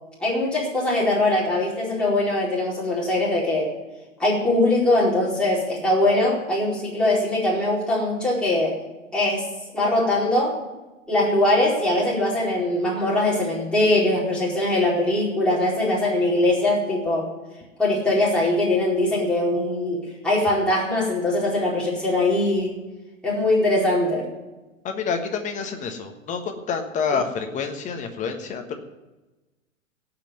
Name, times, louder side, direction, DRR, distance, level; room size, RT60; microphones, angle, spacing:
voice 1, 0.2-3.7 4.2-8.7 9.1-9.4 9.7-10.6 11.1-17.3 17.8-22.7 23.2-24.3, left 1 dB, ahead, -7 dB, 4.5 m, -21 dB
voice 2, 24.8-28.8, left 5 dB, 20° left, 5 dB, 1.4 m, -28 dB
17.5 x 6.0 x 9.3 m, 1.1 s
figure-of-eight pair, 110°, 39 cm